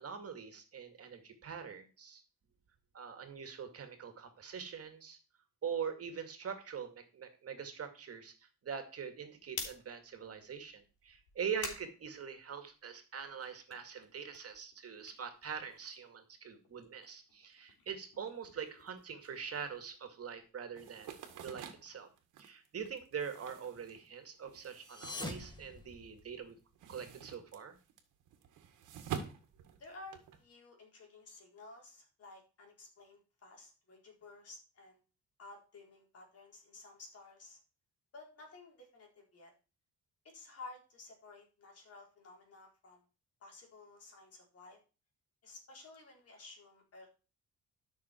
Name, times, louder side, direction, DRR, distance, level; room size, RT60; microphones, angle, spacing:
voice 1, 0.0-2.2 2.9-5.2 5.6-21.2 21.4-22.1 22.4-26.6 26.9-27.8, right 7 dB, 50° right, 7 dB, 2.2 m, -43 dB
sound 1, 9.4-12.9 13.3-16.2 16.5-20.6, left 5 dB, 80° left, 3.8 m, -50 dB
sound 2, 20.8-26.2 26.5-30.4, right 8 dB, 85° right, 1.9 m, -47 dB
sound 3, 24.7-26.6, left 2 dB, 15° left, 1.7 m, -45 dB
voice 2, 29.8-35.0 35.4-37.6 38.1-39.5 40.3-43.0 43.4-44.8 45.4-47.1, left 3 dB, 50° left, 0 dB, 4.3 m, -54 dB
12.5 x 6.3 x 4.5 m, 0.33 s
cardioid pair, 90°, 30 cm